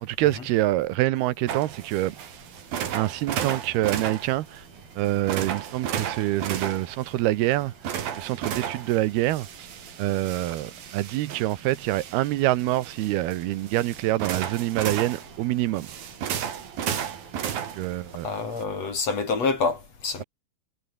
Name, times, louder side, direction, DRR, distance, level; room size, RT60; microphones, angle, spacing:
voice 1, 0.0-2.2 2.9-4.6 5.0-7.7 8.2-9.7 10.0-15.9 17.8-18.3, right 16 dB, 85° right, 2.9 m, -26 dB
sound 1, 1.5-18.6, right 9 dB, 65° right, 4.1 m, -34 dB
voice 2, 18.2-20.2, left 4 dB, 40° left, 5.0 m, -27 dB
omnidirectional pair, 4.6 m